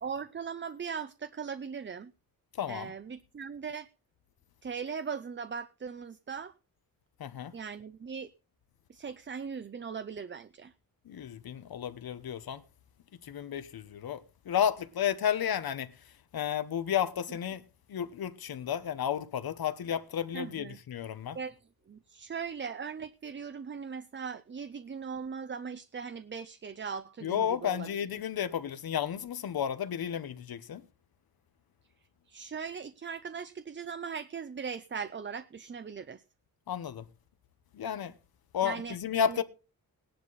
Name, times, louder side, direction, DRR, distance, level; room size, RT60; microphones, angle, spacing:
voice 1, 0.0-2.1 2.7-3.9 4.6-6.5 7.5-8.3 8.9-10.7 20.3-20.8 21.3-21.6 21.9-27.9 32.3-36.2 38.6-39.0 39.3-39.4, right 6 dB, 30° right, 0.6 m, -39 dB
voice 2, 2.6-2.9 7.2-7.5 11.1-12.6 13.2-15.9 16.3-17.6 17.9-21.4 27.2-30.8 36.7-37.1 37.7-38.1 38.5-39.4, left 9 dB, 80° left, 1.1 m, -32 dB
18.0 x 10.5 x 4.0 m
wide cardioid pair, 130°, 36 cm